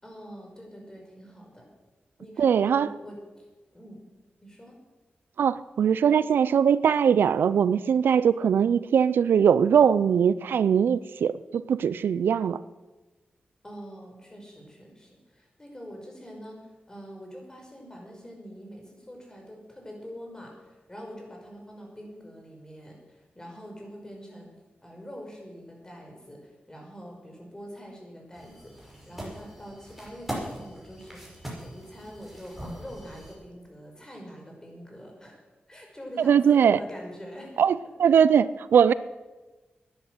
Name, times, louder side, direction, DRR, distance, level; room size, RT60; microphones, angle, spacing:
voice 1, 0.0-1.7 2.2-3.5 3.7-4.0 4.4-4.8 13.6-24.5 24.8-35.4 35.7-37.6, equal, 20° left, 0 dB, 5.3 m, -44 dB
voice 2, 2.4-2.9 5.4-12.6 36.2-36.8 37.6-38.9, right 7 dB, 90° right, 17 dB, 0.4 m, -21 dB
sound 1, 28.3-33.4, equal, 5° right, 5.4 m, -40 dB
11.0 x 10.0 x 7.9 m, 1.2 s
cardioid pair, 65°, 4 cm